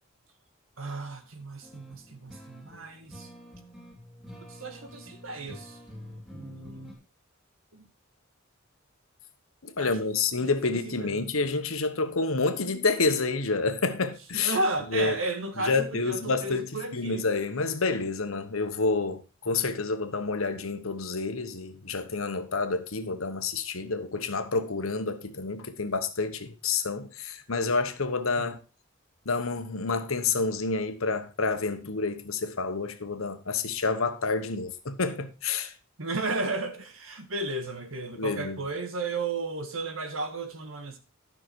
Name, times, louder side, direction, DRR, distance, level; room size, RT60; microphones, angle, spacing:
voice 1, 0.8-3.3 4.5-5.8 6.3-7.0 7.7-7.9 9.8-10.0 10.4-11.2 14.3-17.2 28.4-28.6 36.0-41.0, right 2 dB, 75° right, 1.7 m, -34 dB
sound 1, 1.6-6.9, equal, ahead, 3.0 m, -47 dB
voice 2, 9.6-14.6 14.9-15.1 15.6-28.6 29.2-35.7 38.2-38.6, left 3 dB, 85° left, 1.2 m, -29 dB
12.0 x 6.1 x 4.6 m
head